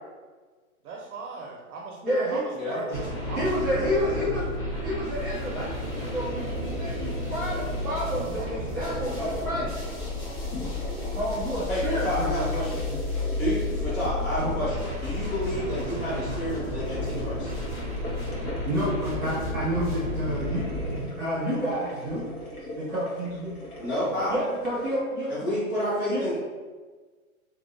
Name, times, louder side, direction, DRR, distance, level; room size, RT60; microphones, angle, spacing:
voice 1, 0.8-4.5 7.5-9.5, right 3 dB, 75° right, -1 dB, 0.5 m, -39 dB
voice 2, 2.0-2.4 2.9-3.0 3.3-4.4 4.8-5.7 6.1-9.7 11.1-12.3 12.9-13.0 14.4-14.5 18.4-22.2 22.8-23.5 24.3-25.5 26.1-26.2, equal, 15° right, -15 dB, 0.6 m, -29 dB
sound 1, 2.9-21.0, left 2 dB, 35° left, 0.8 m, -32 dB
sound 2, 5.7-24.9, left 1 dB, 80° left, 1.1 m, -41 dB
voice 3, 11.7-12.8 13.3-17.5 23.8-24.4 25.3-26.4, equal, 55° left, -10 dB, 1.1 m, -30 dB
2.6 x 2.1 x 2.5 m, 1.4 s
hypercardioid pair, 170°, 43 cm